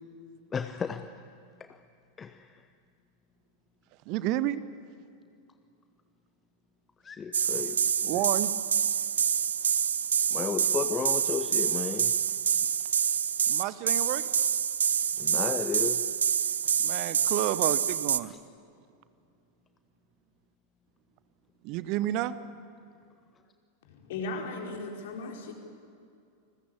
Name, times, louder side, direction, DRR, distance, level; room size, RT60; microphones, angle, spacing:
voice 1, 0.5-1.2 2.2-2.5 7.0-8.2 10.3-12.1 15.2-16.0 18.3-18.4, left 6 dB, 20° left, 9 dB, 1.0 m, -34 dB
voice 2, 4.1-4.6 8.0-8.5 13.5-14.4 16.8-18.3 21.6-22.4, right 14 dB, 40° right, 16 dB, 1.0 m, -30 dB
sound 1, 7.3-18.2, right 8 dB, 65° right, 0.7 m, -27 dB
voice 3, 23.8-25.5, left 3 dB, 55° left, 2 dB, 4.5 m, -37 dB
28.5 x 20.5 x 8.7 m, 2.4 s
figure-of-eight pair, 90°, 0 cm